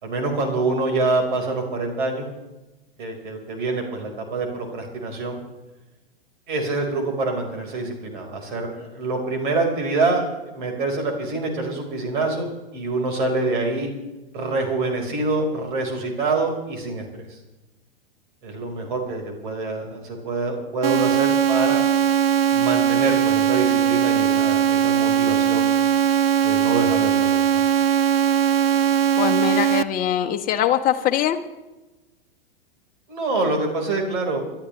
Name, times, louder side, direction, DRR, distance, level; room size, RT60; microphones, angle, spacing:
voice 1, 0.0-2.3 3.0-5.4 6.5-10.2 10.5-13.9 14.3-17.4 18.4-21.8 22.5-25.7 26.4-27.6 33.1-34.4, right 3 dB, 55° right, 2 dB, 4.8 m, -26 dB
sound 1, 20.8-29.8, right 9 dB, 75° right, 0.6 m, -19 dB
voice 2, 29.2-31.4, left 10 dB, 30° left, 7 dB, 1.2 m, -22 dB
29.0 x 12.5 x 3.3 m, 1.1 s
figure-of-eight pair, 100°, 30 cm